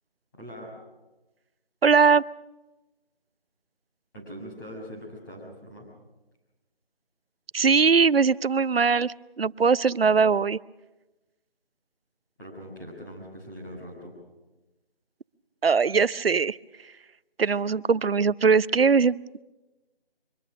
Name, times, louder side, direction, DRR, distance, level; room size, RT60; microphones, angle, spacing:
voice 1, 0.3-0.7 4.1-5.9 12.4-14.2, equal, 20° left, -4 dB, 6.2 m, -41 dB
voice 2, 1.8-2.2 7.5-10.6 15.6-16.9 17.4-19.4, right 5 dB, 70° right, 20 dB, 0.6 m, -21 dB
24.0 x 20.5 x 6.3 m, 1.1 s
figure-of-eight pair, 175°, 30 cm